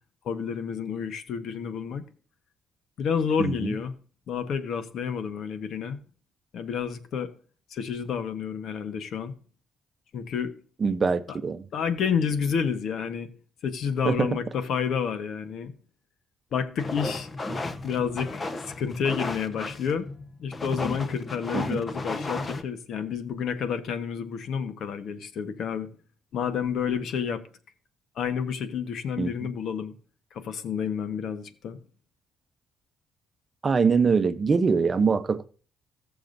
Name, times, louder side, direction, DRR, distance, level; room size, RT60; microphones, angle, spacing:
voice 1, 0.2-2.0 3.0-3.9 4.3-6.0 6.5-7.3 7.7-9.3 10.1-10.5 11.3-11.4 11.7-13.3 13.6-15.7 16.5-17.3 17.8-18.5 18.8-20.1 20.4-25.9 26.3-27.4 28.2-29.9 30.3-31.8, left 7 dB, 70° left, 1.1 m, -29 dB
voice 2, 3.4-3.7 10.8-11.6 14.0-14.4 21.5-21.8 29.2-29.3 33.6-35.5, right 5 dB, 35° right, 0.7 m, -23 dB
sound 1, 16.8-22.6, left 2 dB, 30° left, 1.0 m, -34 dB
16.0 x 7.0 x 2.6 m
cardioid pair, 90°, 0 cm